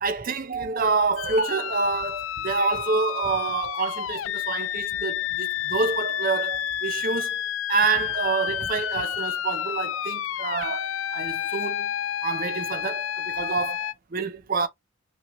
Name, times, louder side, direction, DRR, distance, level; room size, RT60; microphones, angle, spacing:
voice 1, 0.0-7.4 7.7-11.9 12.2-14.7, right 4 dB, 45° right, 0.6 m, -27 dB
sound 1, 1.2-13.9, left 11 dB, 70° left, 0.3 m, -30 dB
5.9 x 2.3 x 2.9 m
head